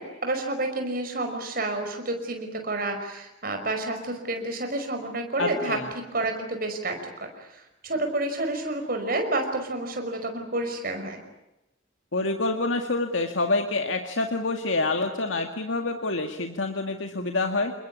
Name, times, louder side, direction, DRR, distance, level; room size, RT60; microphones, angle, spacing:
voice 1, 0.0-5.8 6.1-11.2, right 2 dB, 50° right, 5 dB, 5.5 m, -29 dB
voice 2, 5.4-5.9 12.1-17.7, left 3 dB, 80° left, 5 dB, 2.1 m, -27 dB
29.0 x 21.5 x 8.6 m, 0.92 s
head